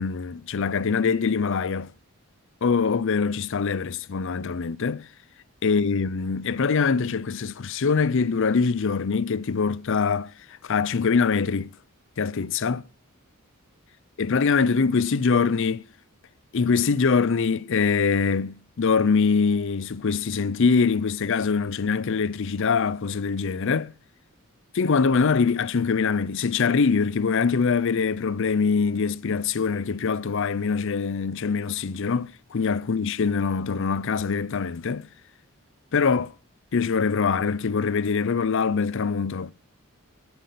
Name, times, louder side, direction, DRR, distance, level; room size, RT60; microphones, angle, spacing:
voice 1, 0.0-1.9 2.6-5.1 5.6-10.3 10.6-11.7 12.2-12.8 14.2-15.9 16.5-23.9 24.7-35.1 35.9-36.3 36.7-39.5, left 5 dB, 60° left, 0.5 m, -23 dB
10.5 x 8.0 x 8.4 m
head